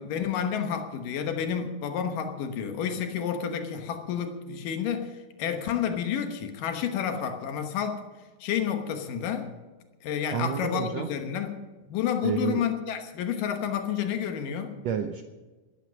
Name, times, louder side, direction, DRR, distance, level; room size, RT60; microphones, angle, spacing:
voice 1, 0.0-8.0 8.4-9.5 10.0-14.8, left 8 dB, 85° left, 6 dB, 2.8 m, -30 dB
voice 2, 10.3-11.1 12.2-12.7 14.8-15.2, right 8 dB, 70° right, 6 dB, 1.7 m, -30 dB
14.0 x 12.0 x 6.4 m, 1.3 s
omnidirectional pair, 3.7 m